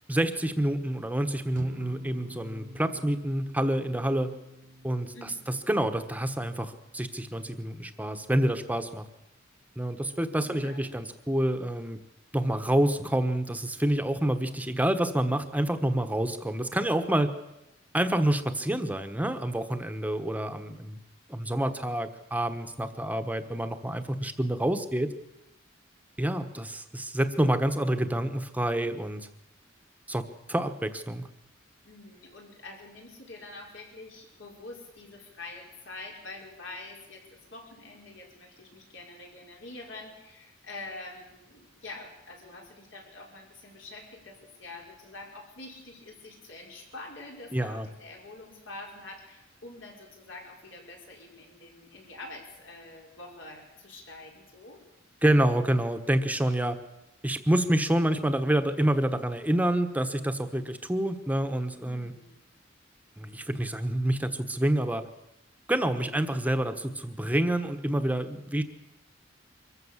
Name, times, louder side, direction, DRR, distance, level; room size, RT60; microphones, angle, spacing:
voice 1, 0.1-4.3 4.8-5.1 5.7-9.1 9.8-12.0 12.3-17.3 17.9-21.0 21.3-25.1 26.2-29.3 30.1-31.2 47.5-47.9 55.2-56.8 57.2-62.1 63.2-65.1 65.7-68.6, right 1 dB, 10° right, 9 dB, 1.2 m, -27 dB
sound 1, 1.5-8.0, equal, 45° right, 1.0 m, -47 dB
voice 2, 5.1-5.5 10.5-10.9 31.8-54.8 61.8-62.3, left 2 dB, 70° left, -1 dB, 5.5 m, -46 dB
24.0 x 14.5 x 7.4 m, 0.92 s
head